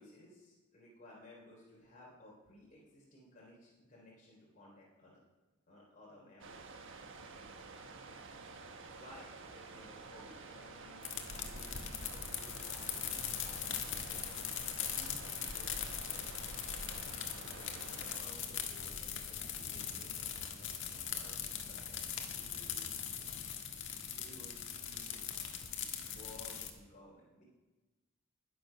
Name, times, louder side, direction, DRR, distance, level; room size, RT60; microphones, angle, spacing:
voice 1, 0.0-5.2 5.7-6.6 8.8-15.7 16.0-22.9 24.1-25.2 26.0-27.4, left 1 dB, 40° left, -4 dB, 3.9 m, -58 dB
sound 1, 6.4-18.2, right 4 dB, 65° right, 1.4 m, -51 dB
sound 2, 11.0-26.7, left 8 dB, 65° left, 1.6 m, -41 dB
21.0 x 7.3 x 5.9 m, 1.1 s
head